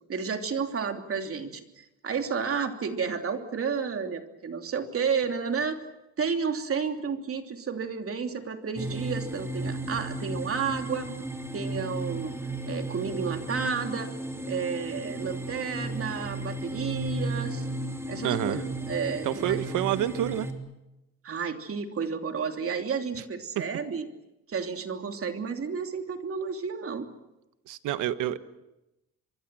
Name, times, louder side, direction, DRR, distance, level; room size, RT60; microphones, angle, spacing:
voice 1, 0.1-5.8 6.2-11.1 11.5-12.3 12.7-14.1 14.5-17.7 18.1-19.6 21.2-24.1 24.5-27.1, right 6 dB, 50° right, 5 dB, 3.0 m, -31 dB
sound 1, 8.8-20.5, right 1 dB, 10° right, 4.1 m, -34 dB
voice 2, 18.2-18.6 19.2-20.5 27.7-28.4, right 12 dB, 85° right, 13 dB, 1.3 m, -28 dB
25.5 x 23.5 x 7.7 m, 0.93 s
cardioid pair, 90°, 30 cm